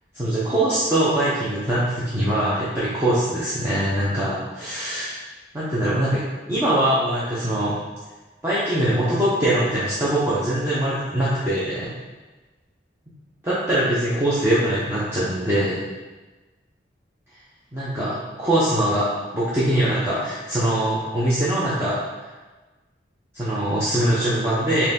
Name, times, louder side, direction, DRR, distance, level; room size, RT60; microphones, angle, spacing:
voice 1, 0.1-5.2 5.5-6.2 6.5-7.8 8.4-11.9 13.4-15.8 17.7-22.3 23.3-24.9, right 1 dB, 15° right, -10 dB, 0.7 m, -22 dB
4.5 x 2.7 x 3.7 m, 1.2 s
head